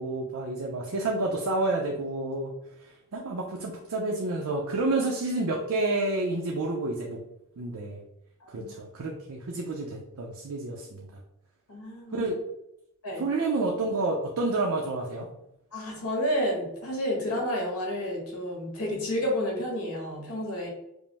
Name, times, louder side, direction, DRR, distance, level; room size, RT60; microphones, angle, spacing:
voice 1, 0.0-2.5 3.1-7.2 7.6-8.0 8.5-11.1 12.1-12.3 13.2-15.3, right 2 dB, 70° right, -1 dB, 0.6 m, -29 dB
voice 2, 8.4-8.7 11.7-12.2 13.0-13.2 15.7-20.7, equal, 80° left, -2 dB, 1.4 m, -30 dB
5.1 x 2.1 x 3.4 m, 0.82 s
head